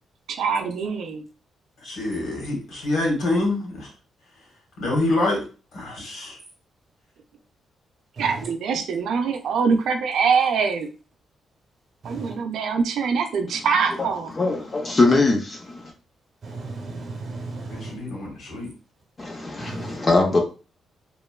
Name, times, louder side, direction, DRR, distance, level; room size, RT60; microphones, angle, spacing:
voice 1, 0.3-1.2 8.2-10.9 12.0-14.3 20.3-20.4, right 5 dB, 70° right, 0.4 m, -23 dB
voice 2, 1.8-3.9 4.8-5.4 5.7-6.4 17.7-18.7, left 2 dB, 65° left, 1.2 m, -26 dB
voice 3, 12.0-12.3 16.4-18.0 19.6-19.9, right 3 dB, 40° right, 0.7 m, -35 dB
voice 4, 14.4-15.9 19.2-20.4, left 3 dB, 25° left, 0.4 m, -21 dB
2.9 x 2.2 x 2.2 m
cardioid pair, 145°, 0 cm